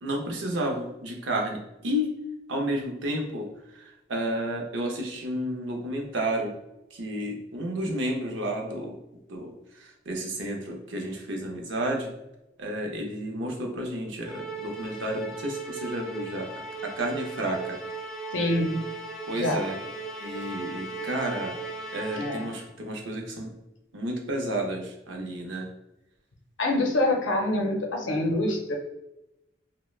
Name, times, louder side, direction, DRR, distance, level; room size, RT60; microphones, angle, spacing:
voice 1, 0.0-2.1 2.5-6.5 6.9-9.0 9.3-12.1 12.6-16.5 16.8-17.8 19.3-19.8 20.2-21.6 21.9-23.5 23.9-25.7, right 1 dB, 75° right, 1 dB, 0.6 m, -31 dB
Musical instrument, 14.2-22.7, right 3 dB, ahead, 0.6 m, -37 dB
voice 2, 18.3-18.8 19.4-19.6 22.2-22.5 26.6-28.8, left 1 dB, 80° left, 2 dB, 0.6 m, -25 dB
3.1 x 2.1 x 2.3 m, 0.92 s
head